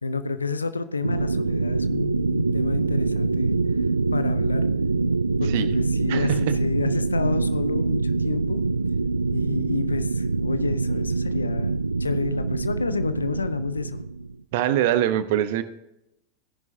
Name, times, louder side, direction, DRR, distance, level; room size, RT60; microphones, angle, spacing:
voice 1, 0.0-3.5 4.1-4.7 5.4-8.6 9.3-14.0, left 4 dB, 75° left, 12 dB, 0.8 m, -29 dB
sound 1, 1.0-14.3, right 3 dB, 80° right, 0.3 m, -25 dB
voice 2, 6.1-6.4 14.5-15.6, right 11 dB, 50° right, 13 dB, 0.9 m, -23 dB
17.5 x 10.5 x 2.7 m, 0.90 s
figure-of-eight pair, 90°, 0 cm